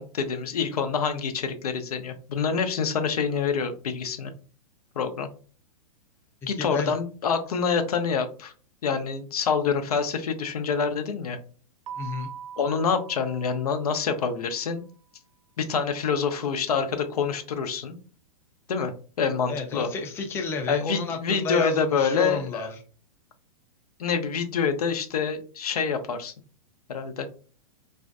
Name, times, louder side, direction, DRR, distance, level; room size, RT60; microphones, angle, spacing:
voice 1, 0.0-4.3 5.0-5.3 6.5-8.5 8.8-11.4 12.6-14.8 15.6-18.0 18.7-19.9 20.7-22.7 24.0-26.3 26.9-27.3, left 6 dB, 80° left, 8 dB, 0.5 m, -26 dB
voice 2, 6.6-6.9 12.0-12.3 19.5-22.7, left 4 dB, 15° left, 4 dB, 0.4 m, -31 dB
Keyboard (musical), 11.9-14.4, right 8 dB, 60° right, 0.4 m, -42 dB
2.5 x 2.1 x 2.4 m, 0.39 s
hypercardioid pair, 115°, 19 cm